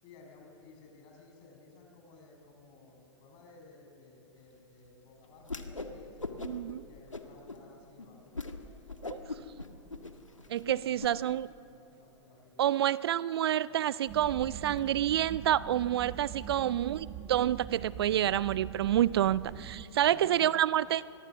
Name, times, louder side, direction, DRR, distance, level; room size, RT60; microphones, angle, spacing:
voice 1, 0.0-6.3 6.9-9.3 9.6-12.7 13.7-13.8 19.4-19.5 20.1-20.5, left 3 dB, 35° left, 1 dB, 7.1 m, -56 dB
Whoosh swoosh swish, 5.4-5.9 6.2-6.7 7.1-7.6 8.0-8.1 8.3-8.5 8.9-11.1, left 3 dB, 85° left, 1.7 m, -39 dB
voice 2, 6.4-6.8 9.1-9.2 10.5-11.5 12.6-19.4 19.7-21.0, right 11 dB, 55° right, 20 dB, 0.4 m, -28 dB
sound 1, 14.1-19.9, right 8 dB, 30° right, 1.2 m, -43 dB
25.5 x 22.0 x 7.2 m, 2.9 s
figure-of-eight pair, 105°, 16 cm